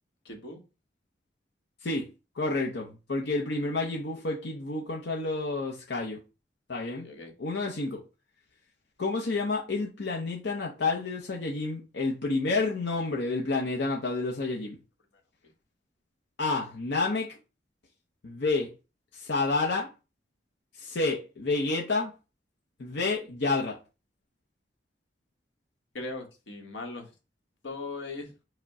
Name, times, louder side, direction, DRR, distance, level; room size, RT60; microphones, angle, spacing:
voice 1, 0.2-0.6 7.0-7.3 25.9-27.1 27.6-28.3, left 3 dB, 90° left, 1.2 m, -39 dB
voice 2, 2.3-6.2 6.7-7.1 7.4-8.0 9.0-14.8 16.4-17.4 18.2-18.7 19.1-19.9 20.7-22.1 22.8-23.8, left 3 dB, 75° left, 0.7 m, -29 dB
4.8 x 2.2 x 4.6 m
head